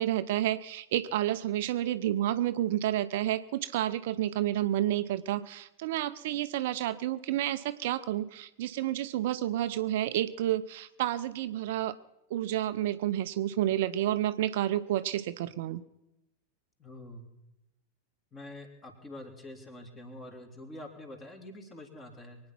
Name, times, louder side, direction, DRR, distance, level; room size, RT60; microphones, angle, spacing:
voice 1, 0.0-12.0 12.3-15.8, right 13 dB, 55° right, 12 dB, 0.6 m, -30 dB
voice 2, 16.8-17.2 18.3-22.4, left 1 dB, 20° left, 5 dB, 3.1 m, -46 dB
23.5 x 9.5 x 5.9 m, 0.93 s
figure-of-eight pair, 90°, 0 cm